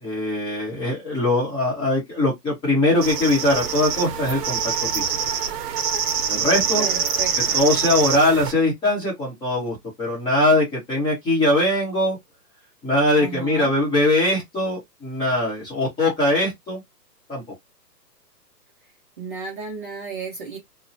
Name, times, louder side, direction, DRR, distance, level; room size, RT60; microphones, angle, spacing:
voice 1, 0.0-5.2 6.3-6.9 7.5-12.2 12.8-16.8 17.3-17.4, left 1 dB, 10° left, 0.8 m, -21 dB
sound 1, 3.0-8.5, right 7 dB, 70° right, 0.7 m, -25 dB
voice 2, 6.8-7.6 13.2-13.7 19.2-20.6, right 5 dB, 30° right, 0.6 m, -33 dB
2.6 x 2.1 x 2.6 m
hypercardioid pair, 140°, 50 cm